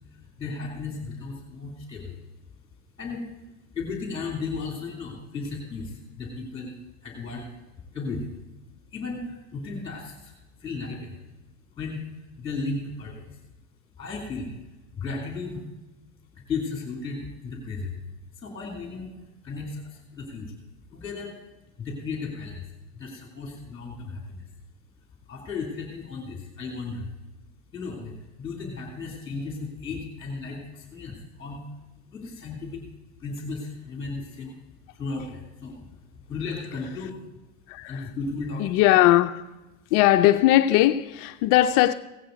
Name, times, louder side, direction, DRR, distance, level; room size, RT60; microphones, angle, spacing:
voice 1, 0.1-2.2 3.0-3.3 3.7-6.7 7.0-7.5 7.9-8.4 8.9-10.3 10.6-11.2 11.7-13.4 14.0-14.6 15.0-15.6 16.3-17.9 18.4-19.1 19.4-20.6 20.9-21.3 21.8-22.7 22.9-24.5 25.3-27.1 27.7-31.6 32.1-32.8 33.2-34.5 34.9-35.9 36.3-37.2 37.8-38.7, left 4 dB, 10° left, 2.7 m, -35 dB
voice 2, 37.7-38.1 38.6-39.5 39.9-41.9, left 14 dB, 40° left, 0.4 m, -19 dB
16.0 x 9.3 x 3.8 m
supercardioid pair, 125°, 45 cm